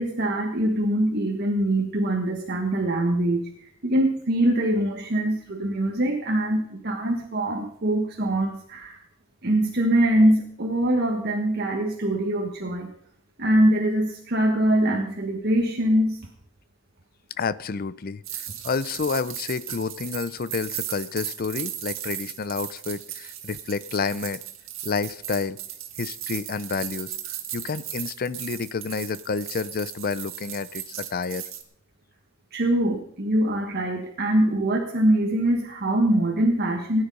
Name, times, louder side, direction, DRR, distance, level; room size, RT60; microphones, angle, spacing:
voice 1, 0.0-3.4 3.8-8.9 9.4-12.9 13.4-16.2 32.5-37.0, right 1 dB, 55° right, 2 dB, 1.4 m, -23 dB
voice 2, 17.4-24.4 24.8-25.6 26.0-31.4, left 4 dB, 50° left, 17 dB, 0.5 m, -29 dB
sound 1, 18.2-31.6, right 11 dB, 85° right, 1.6 m, -36 dB
17.0 x 9.9 x 5.4 m, 0.67 s
head